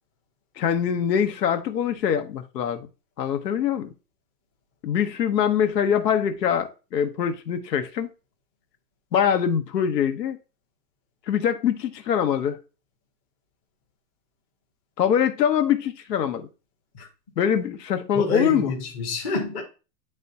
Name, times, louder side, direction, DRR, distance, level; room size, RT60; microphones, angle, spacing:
voice 1, 0.6-2.9 3.2-3.9 4.8-8.1 9.1-10.4 11.3-12.6 15.0-16.5 17.4-18.7, left 8 dB, 75° left, 1.1 m, -23 dB
voice 2, 18.1-19.6, left 2 dB, 15° left, 0.8 m, -27 dB
10.0 x 3.5 x 2.7 m
hypercardioid pair, 170°, 50 cm